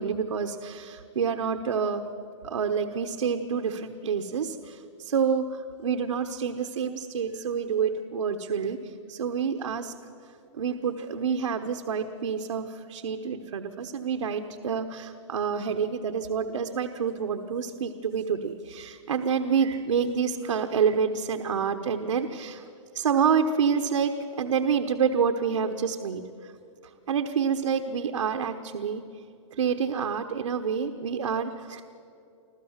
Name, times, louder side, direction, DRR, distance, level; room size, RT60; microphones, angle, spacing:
voice 1, 0.0-2.0 2.4-9.9 10.5-22.6 22.9-24.1 24.4-26.5 27.1-29.0 29.5-31.8, right 6 dB, 90° right, 5 dB, 1.1 m, -28 dB
26.0 x 15.0 x 7.3 m, 2.6 s
hypercardioid pair, 140°, 16 cm